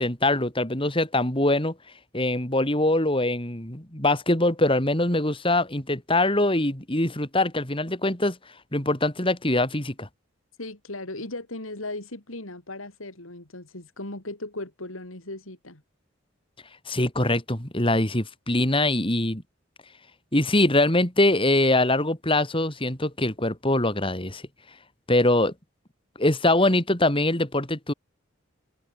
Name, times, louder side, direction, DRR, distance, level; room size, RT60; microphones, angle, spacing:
voice 1, 0.0-1.7 2.1-8.4 8.7-10.1 16.9-19.4 20.3-24.4 25.1-25.5 26.2-27.9, left 1 dB, 25° left, 4.1 m, -23 dB
voice 2, 10.6-15.8, left 2 dB, 90° left, 5.1 m, -37 dB
open air
head